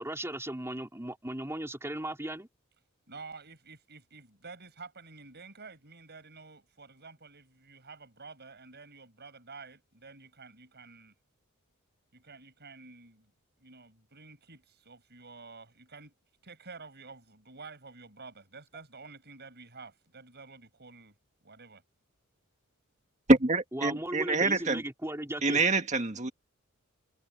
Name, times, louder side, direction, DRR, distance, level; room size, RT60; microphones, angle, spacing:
voice 1, 0.0-2.5 23.7-25.6, right 1 dB, 10° right, 3.9 m, -36 dB
voice 2, 3.1-11.1 12.1-13.3 13.6-16.1 16.4-21.1 21.4-21.8, right 4 dB, 50° right, 7.1 m, -50 dB
voice 3, 23.3-24.8 25.4-26.3, right 2 dB, 35° right, 1.8 m, -25 dB
head